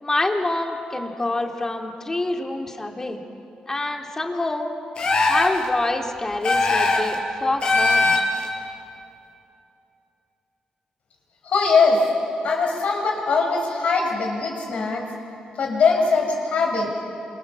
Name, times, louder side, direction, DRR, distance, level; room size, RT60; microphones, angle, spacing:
voice 1, 0.0-3.2 3.7-4.7 5.3-8.1, left 2 dB, 20° left, 2 dB, 2.9 m, -26 dB
sound 1, 5.0-5.6 6.4-7.1 7.6-8.5, left 3 dB, 45° left, 4.6 m, -20 dB
voice 2, 11.4-12.0 12.4-15.1 15.6-16.9, left 4 dB, 65° left, 1 dB, 6.6 m, -21 dB
29.0 x 27.5 x 7.4 m, 2.7 s
cardioid pair, 115°, 3 cm